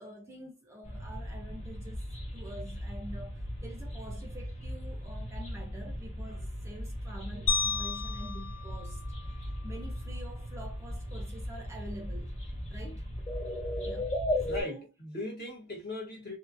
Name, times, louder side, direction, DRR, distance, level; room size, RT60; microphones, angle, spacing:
voice 1, 0.0-2.0 2.3-9.0 9.6-12.4 12.7-13.1 13.8-14.1 14.6-14.9, equal, 15° right, 0.5 m, -46 dB
sound 1, 0.8-14.6, equal, 30° left, 1.1 m, -37 dB
sound 2, 7.5-9.8, left 5 dB, 80° left, 1.6 m, -33 dB
voice 2, 14.4-16.4, left 2 dB, 45° left, 1.2 m, -38 dB
2.6 x 2.4 x 2.5 m
head